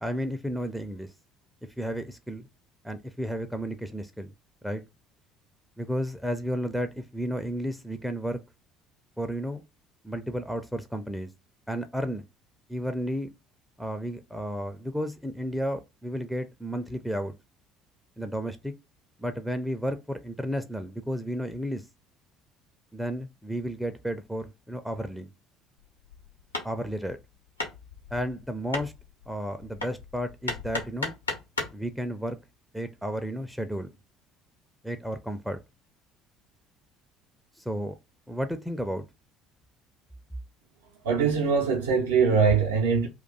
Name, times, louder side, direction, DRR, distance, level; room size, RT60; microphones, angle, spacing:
voice 1, 0.0-1.1 1.8-2.5 2.8-4.3 4.6-4.8 5.8-8.4 9.2-9.6 10.0-11.3 11.7-12.2 12.7-13.3 13.8-17.3 18.2-18.7 19.2-21.8 22.9-25.3 26.6-27.2 28.1-28.9 29.3-31.1 31.7-32.4 32.7-33.9 34.8-35.6 37.6-38.0 38.3-39.0, equal, ahead, 0.4 m, -32 dB
Hammer, 25.8-31.8, left 3 dB, 85° left, 0.7 m, -36 dB
voice 2, 41.0-43.1, right 5 dB, 70° right, 0.5 m, -22 dB
2.3 x 2.2 x 3.9 m
figure-of-eight pair, 55°, 0 cm